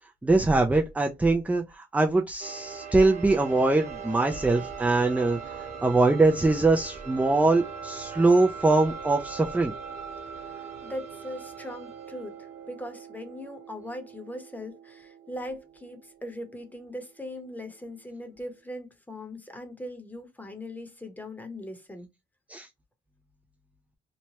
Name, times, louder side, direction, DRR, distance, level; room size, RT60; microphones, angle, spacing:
voice 1, 0.2-9.7 22.5-22.7, right 2 dB, 5° right, 0.4 m, -23 dB
sound 1, 2.4-18.0, right 6 dB, 50° right, 1.2 m, -41 dB
voice 2, 10.5-22.1, left 1 dB, 10° left, 0.9 m, -40 dB
3.1 x 2.1 x 2.8 m
cardioid pair, 90°, 20 cm